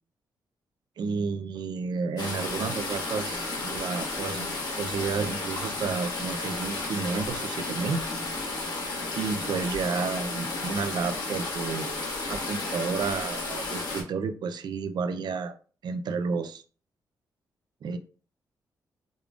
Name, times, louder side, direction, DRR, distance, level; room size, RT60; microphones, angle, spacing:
voice 1, 1.0-4.4 4.8-8.1 9.2-12.0 12.3-15.5 15.8-16.6 17.8-18.0, right 5 dB, 70° right, 9 dB, 0.5 m, -31 dB
sound 1, 2.2-14.0, left 2 dB, 65° left, 1.5 m, -33 dB
5.1 x 3.6 x 2.4 m, 0.38 s
cardioid pair, 90°, 8 cm